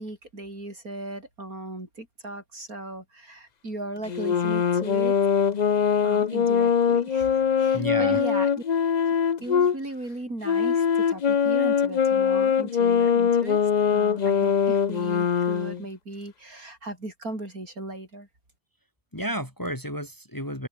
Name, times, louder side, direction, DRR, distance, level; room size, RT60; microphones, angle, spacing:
voice 1, 0.0-5.1 6.0-8.5 9.4-18.3, right 2 dB, 55° right, 7.4 m, -37 dB
sound 1, 4.1-9.8 10.4-15.8, left 7 dB, 85° left, 0.3 m, -22 dB
voice 2, 7.7-8.2 19.1-20.7, equal, 10° left, 2.9 m, -31 dB
omnidirectional pair, 1.8 m